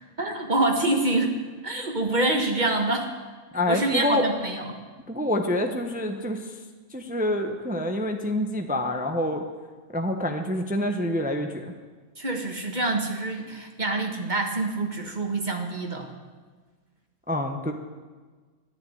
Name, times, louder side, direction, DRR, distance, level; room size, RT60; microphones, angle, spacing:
voice 1, 0.2-1.4 1.6-3.1 3.7-4.8 12.2-16.1, right 2 dB, 35° right, 3 dB, 1.5 m, -26 dB
voice 2, 3.5-4.2 5.1-6.4 6.9-9.4 9.9-11.6 17.3-17.7, left 1 dB, 5° right, 4 dB, 0.8 m, -26 dB
11.0 x 10.5 x 9.2 m, 1.4 s
omnidirectional pair, 1.5 m